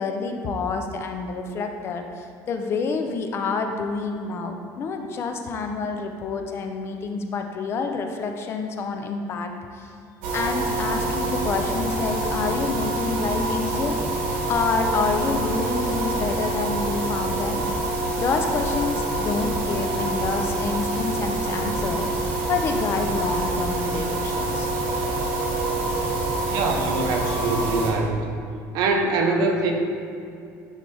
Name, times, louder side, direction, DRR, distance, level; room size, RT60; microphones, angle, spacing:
voice 1, 0.0-9.9 10.3-14.0 14.5-17.6 18.2-24.7, left 4 dB, 40° left, 5 dB, 0.5 m, -28 dB
sound 1, 10.2-27.9, right 2 dB, 80° right, 1.4 m, -26 dB
voice 2, 26.5-28.2 28.7-29.7, right 3 dB, 65° right, 3 dB, 0.8 m, -23 dB
9.7 x 3.3 x 3.4 m, 2.4 s
cardioid pair, 145°, 7 cm